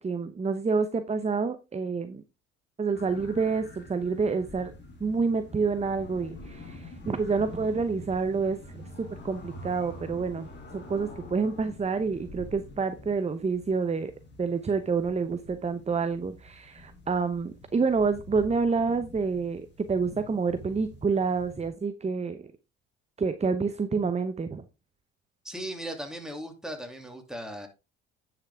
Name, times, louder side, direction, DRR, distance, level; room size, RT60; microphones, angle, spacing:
voice 1, 0.0-2.2 2.8-4.7 5.0-10.5 10.7-14.1 14.4-22.5 23.2-24.6, right 4 dB, 20° right, 0.9 m, -28 dB
sound 1, 2.9-21.7, left 1 dB, 35° left, 3.4 m, -46 dB
voice 2, 25.4-27.7, right 1 dB, ahead, 2.7 m, -37 dB
9.8 x 6.0 x 3.6 m
hypercardioid pair, 70°, 31 cm